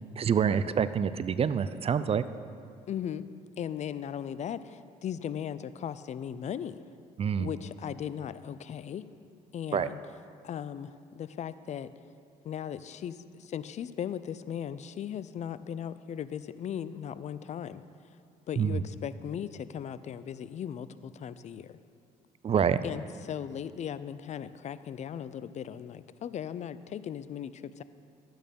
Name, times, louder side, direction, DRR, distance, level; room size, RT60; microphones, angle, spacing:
voice 1, 0.2-2.2 7.2-7.5 9.7-9.9 18.6-18.8 22.4-22.8, right 7 dB, 40° right, 14 dB, 0.5 m, -26 dB
voice 2, 2.9-3.3 3.6-6.8 7.4-9.0 9.5-10.0 10.4-11.9 12.4-17.8 18.5-21.8 22.8-27.8, left 9 dB, 50° left, 15 dB, 0.5 m, -37 dB
12.5 x 8.9 x 5.3 m, 2.3 s
supercardioid pair, 75°, 16 cm